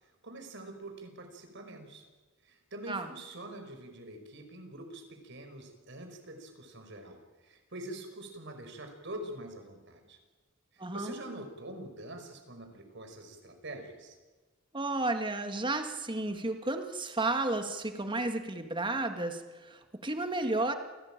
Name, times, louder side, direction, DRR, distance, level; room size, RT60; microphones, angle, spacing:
voice 1, 0.2-2.0 2.4-10.2 10.9-14.2, right 1 dB, 60° right, 6 dB, 5.2 m, -45 dB
voice 2, 10.8-11.1 14.7-20.7, right 2 dB, 25° right, 6 dB, 1.9 m, -32 dB
28.5 x 18.0 x 9.0 m, 1.3 s
head